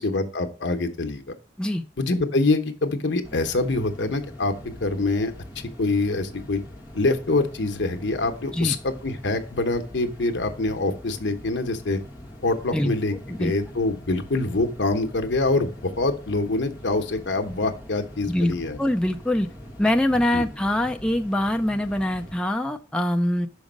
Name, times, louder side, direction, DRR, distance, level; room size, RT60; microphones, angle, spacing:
voice 1, 0.0-1.3 2.0-5.3 5.8-6.6 6.9-12.0 12.4-13.1 13.4-18.8 20.3-20.4, left 2 dB, 75° left, 7 dB, 0.9 m, -25 dB
sound 1, 3.2-22.4, left 1 dB, 15° right, 1.3 m, -43 dB
voice 2, 18.3-19.5 19.8-23.5, left 1 dB, 5° left, 4 dB, 0.3 m, -24 dB
6.0 x 5.1 x 5.1 m, 0.41 s
head